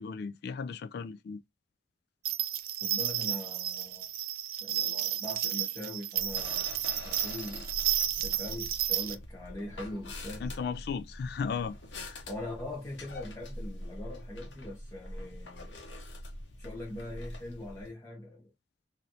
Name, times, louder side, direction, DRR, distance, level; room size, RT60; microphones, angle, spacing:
voice 1, 0.0-1.4 10.4-11.7 12.0-12.2, left 5 dB, 60° left, 0.3 m, -35 dB
sound 1, 2.3-9.2, right 12 dB, 50° right, 0.4 m, -32 dB
voice 2, 2.8-4.1 4.6-6.7 7.0-7.7 8.2-10.5 12.3-15.8 16.6-18.5, left 1 dB, 15° left, 1.0 m, -42 dB
sound 2, 6.1-17.9, left 1 dB, 80° left, 1.0 m, -44 dB
3.1 x 2.7 x 2.6 m
head